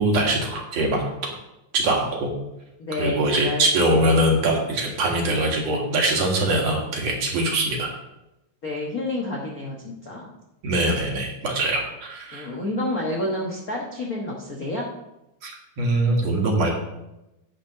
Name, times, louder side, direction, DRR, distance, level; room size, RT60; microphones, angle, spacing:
voice 1, 0.0-1.3 1.7-2.3 3.0-7.9 10.6-12.5 15.4-16.7, right 1 dB, 60° right, 0 dB, 2.7 m, -22 dB
voice 2, 2.8-3.7 8.6-10.3 12.3-14.9, left 1 dB, 55° left, -2 dB, 1.0 m, -29 dB
10.0 x 5.1 x 6.5 m, 0.92 s
omnidirectional pair, 3.5 m